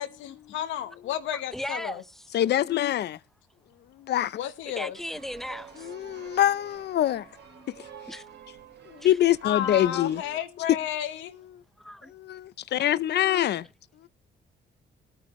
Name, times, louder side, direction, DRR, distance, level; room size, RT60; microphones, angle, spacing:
voice 1, 0.0-2.0 4.3-5.0 9.4-11.3, left 11 dB, 85° left, 1.1 m, -32 dB
voice 2, 1.5-2.0 4.8-5.9 8.1-8.3 9.0-9.2 11.8-12.1, equal, ahead, 0.6 m, -36 dB
voice 3, 2.3-3.2 4.0-4.4 5.8-7.2 8.9-10.2 12.1-13.7, left 12 dB, 60° left, 0.7 m, -24 dB
sound 1, 4.9-10.4, right 7 dB, 70° right, 3.3 m, -49 dB
18.5 x 9.1 x 3.1 m
cardioid pair, 90°, 19 cm